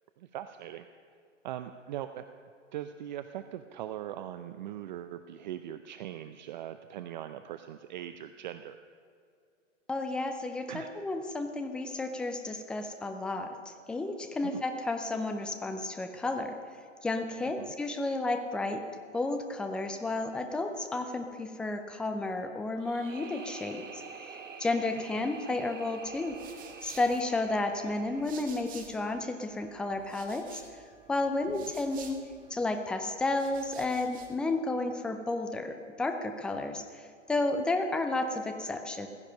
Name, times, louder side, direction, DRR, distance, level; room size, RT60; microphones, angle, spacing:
voice 1, 0.2-0.9 1.4-2.3 2.7-8.8 10.7-11.0 14.4-14.6 17.6-17.7, right 11 dB, 40° right, 10 dB, 0.6 m, -40 dB
voice 2, 9.9-16.6 17.0-18.8 19.1-26.4 26.8-30.6 31.1-32.2 32.5-39.1, left 2 dB, 5° left, 6 dB, 0.4 m, -32 dB
sound 1, 22.8-29.8, right 5 dB, 90° right, 1.2 m, -48 dB
sound 2, 26.0-29.2 29.5-32.6 33.2-34.4, right 7 dB, 20° right, 1.6 m, -52 dB
15.5 x 15.5 x 5.5 m, 2.3 s
figure-of-eight pair, 120°, 37 cm